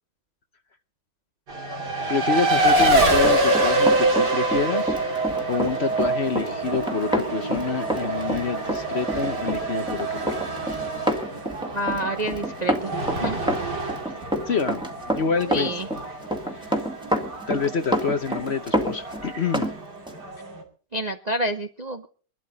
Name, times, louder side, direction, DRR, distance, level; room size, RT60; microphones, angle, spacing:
Race car auto racing, 1.5-20.6, right 2 dB, 75° right, 3.1 m, -26 dB
voice 1, 2.1-10.5 14.5-14.8 15.1-15.7 16.5-16.7 17.5-19.7, left 5 dB, 50° left, 10 dB, 0.9 m, -27 dB
Run, 2.8-19.7 20.1-20.2, right 1 dB, 5° right, 1.7 m, -28 dB
voice 2, 11.7-12.9 13.2-13.4 15.5-15.9 20.9-22.1, right 1 dB, 45° right, 6 dB, 0.5 m, -28 dB
21.5 x 12.0 x 4.0 m, 0.40 s
omnidirectional pair, 1.8 m